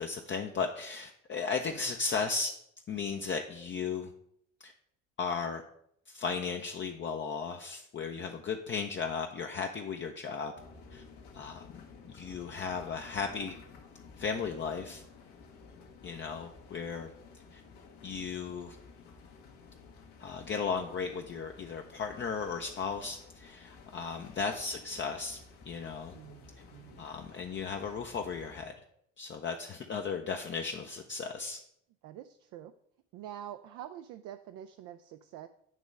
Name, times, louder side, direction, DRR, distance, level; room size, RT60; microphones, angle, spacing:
voice 1, 0.0-2.5 2.9-4.1 4.6-4.7 5.2-5.6 6.1-10.5 10.9-11.0 11.3-11.7 12.0-13.6 14.2-15.0 16.0-17.1 17.5-17.6 18.0-18.8 20.2-25.4 25.7-26.1 27.0-28.7 29.2-31.6, left 5 dB, 30° left, 3 dB, 0.6 m, -35 dB
sound 1, 10.6-28.7, left 4 dB, 70° left, 1.2 m, -53 dB
voice 2, 26.1-27.0 32.0-32.7 33.1-35.5, right 11 dB, 55° right, 9 dB, 0.5 m, -46 dB
9.1 x 3.0 x 5.2 m, 0.71 s
hypercardioid pair, 60°, 37 cm